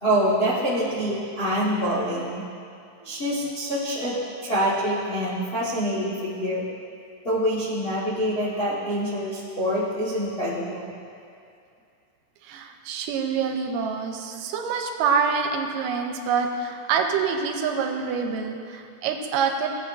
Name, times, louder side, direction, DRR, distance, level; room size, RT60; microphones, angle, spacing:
voice 1, 0.0-2.4 3.0-4.2 4.4-6.6 7.2-10.9, equal, 80° left, -8 dB, 0.5 m, -25 dB
voice 2, 12.4-19.7, right 6 dB, 85° right, 3 dB, 2.3 m, -26 dB
17.0 x 8.2 x 2.6 m, 2.5 s
omnidirectional pair, 3.9 m